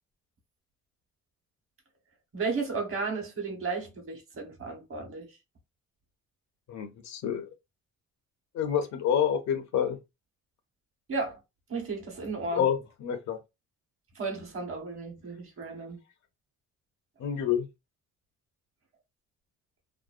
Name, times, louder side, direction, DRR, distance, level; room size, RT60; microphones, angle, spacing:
voice 1, 2.3-5.3 11.1-11.4 11.7-12.7 14.1-16.0, right 4 dB, 45° right, 1.1 m, -34 dB
voice 2, 6.7-7.5 8.5-10.0 12.5-13.4 17.2-17.7, left 8 dB, 65° left, 0.5 m, -28 dB
2.6 x 2.0 x 2.4 m
cardioid pair, 90°, 30 cm